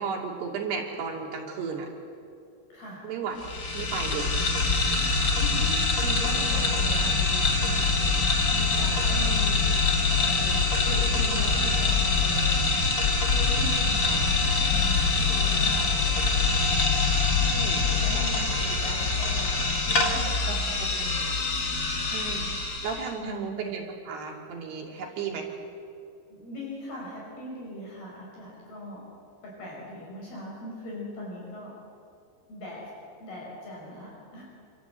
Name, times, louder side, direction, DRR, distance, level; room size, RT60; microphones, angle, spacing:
voice 1, 0.0-1.9 3.0-3.4 3.7-4.7 13.6-13.7 17.4-17.9 18.1-18.2 20.5-20.6 22.0-22.5 22.8-25.4, right 5 dB, 65° right, 0 dB, 4.6 m, -34 dB
voice 2, 2.7-3.0 5.0-8.1 8.5-16.6 17.9-21.3 23.2-23.7 26.3-29.1 29.4-31.8 32.5-32.9 33.2-34.4, equal, 55° left, -3 dB, 7.6 m, -40 dB
sound 1, 3.4-23.1, left 4 dB, 35° left, 2.3 m, -24 dB
27.0 x 27.0 x 8.1 m, 2.4 s
omnidirectional pair, 5.2 m